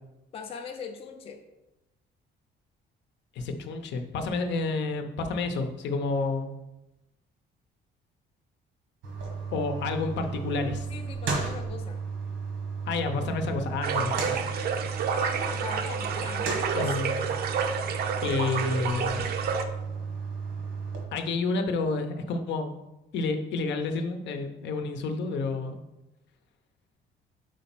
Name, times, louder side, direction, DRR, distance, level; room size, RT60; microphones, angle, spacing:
voice 1, 0.3-1.4 10.9-12.0 15.0-17.0, left 5 dB, 30° left, 4 dB, 0.5 m, -40 dB
voice 2, 3.4-6.5 9.5-10.9 12.9-14.4 16.7-17.2 18.2-19.3 21.1-22.8 23.1-25.8, left 3 dB, 70° left, 6 dB, 0.8 m, -30 dB
sound 1, 9.0-21.0, right 5 dB, 90° right, 1.5 m, -34 dB
sound 2, 13.8-19.6, right 6 dB, 55° right, 0.6 m, -30 dB
4.9 x 4.2 x 5.9 m, 0.96 s
cardioid pair, 170°, 19 cm